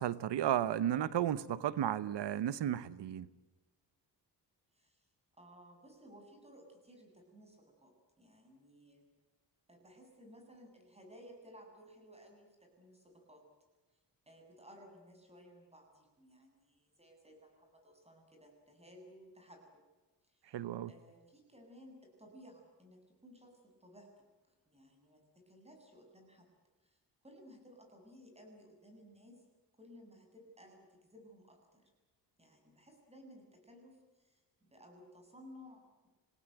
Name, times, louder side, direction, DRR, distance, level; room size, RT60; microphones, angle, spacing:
voice 1, 0.0-3.3 20.5-20.9, right 10 dB, 85° right, 1.1 m, -33 dB
voice 2, 4.7-5.1 5.4-9.0 9.7-13.4 14.3-19.8 20.2-20.6 20.9-24.2 24.7-26.5 26.8-27.0 27.2-29.4 29.8-31.9 32.4-36.1, equal, 15° right, 7.8 m, -58 dB
27.0 x 18.5 x 9.2 m
cardioid pair, 110°, 41 cm